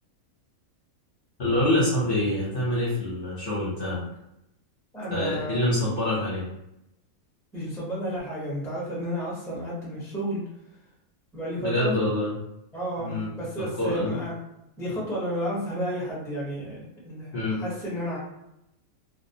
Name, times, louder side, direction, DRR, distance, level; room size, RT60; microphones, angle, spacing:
voice 1, 1.4-4.0 5.1-6.5 11.6-12.3 13.0-13.3 13.8-14.1 17.3-17.6, left 1 dB, 45° left, -7 dB, 0.8 m, -26 dB
voice 2, 4.9-5.6 7.5-10.5 11.3-11.9 12.7-14.3 14.8-18.2, equal, 5° left, -6 dB, 0.5 m, -32 dB
2.5 x 2.0 x 2.6 m, 0.84 s
omnidirectional pair, 1.5 m